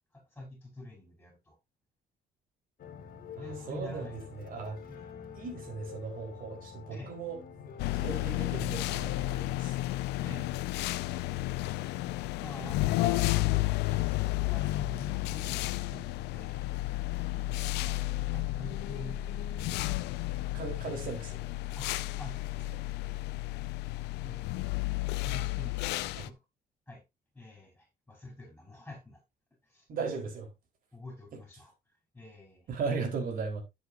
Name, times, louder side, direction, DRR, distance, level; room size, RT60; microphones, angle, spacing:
voice 1, 0.1-1.6 3.4-4.4 4.9-5.3 6.9-7.2 10.2-10.7 12.4-16.7 17.5-19.2 21.8-21.9 22.2-22.4 24.2-24.4 25.2-26.4 26.9-27.0 27.3-29.2 29.6-30.1 30.9-31.7 32.1-32.7, left 2 dB, 5° left, 5.2 m, -46 dB
sound 1, 2.8-8.3, left 7 dB, 55° left, 2.4 m, -47 dB
voice 2, 3.5-4.8 5.3-7.4 7.9-9.8 20.5-21.4 26.2-26.3 29.9-30.5 32.7-33.6, right 5 dB, 55° right, 4.2 m, -37 dB
sound 2, 7.8-26.3, left 18 dB, 85° left, 0.6 m, -32 dB
11.0 x 7.5 x 2.7 m
cardioid pair, 110°, 17 cm